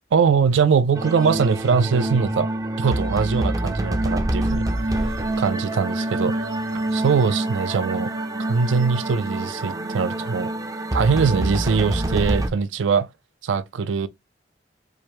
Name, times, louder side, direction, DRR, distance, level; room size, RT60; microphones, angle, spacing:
voice 1, 0.1-2.5 2.8-4.7 5.4-6.5 6.9-8.1 8.4-10.5 10.9-13.1 13.4-14.1, right 5 dB, 90° right, 0.4 m, -22 dB
sound 1, 0.9-12.5, right 1 dB, 20° right, 0.4 m, -26 dB
4.8 x 2.1 x 2.9 m
head